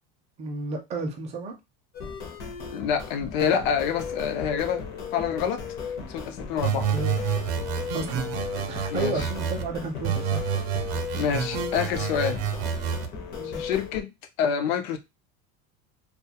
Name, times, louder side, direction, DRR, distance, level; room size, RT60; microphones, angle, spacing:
voice 1, 0.4-1.5 6.9-7.2 7.9-8.3 8.7-10.5 13.4-13.6, right 3 dB, 20° right, 0.4 m, -32 dB
sound 1, 1.9-14.0, left 6 dB, 35° left, 0.5 m, -36 dB
voice 2, 2.7-5.6 6.1-6.9 8.9-9.1 11.2-12.4 13.4-14.1 14.4-15.0, left 7 dB, 80° left, 0.6 m, -27 dB
sound 2, 6.6-9.6 10.0-13.1, right 8 dB, 85° right, 0.6 m, -29 dB
2.3 x 2.2 x 2.7 m
cardioid pair, 170°, 30 cm